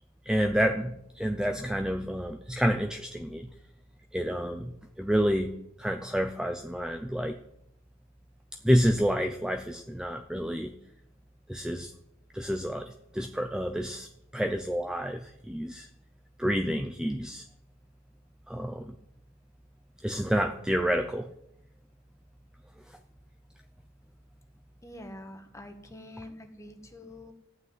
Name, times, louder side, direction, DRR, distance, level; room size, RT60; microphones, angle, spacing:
voice 1, 0.3-3.5 4.1-7.4 8.6-10.7 11.5-11.9 12.3-14.1 14.3-15.9 16.4-17.4 18.5-19.0 20.0-21.3, equal, 5° right, 6 dB, 0.5 m, -29 dB
voice 2, 24.8-27.3, left 1 dB, 15° left, 5 dB, 1.5 m, -46 dB
14.5 x 6.1 x 9.5 m, 0.81 s
head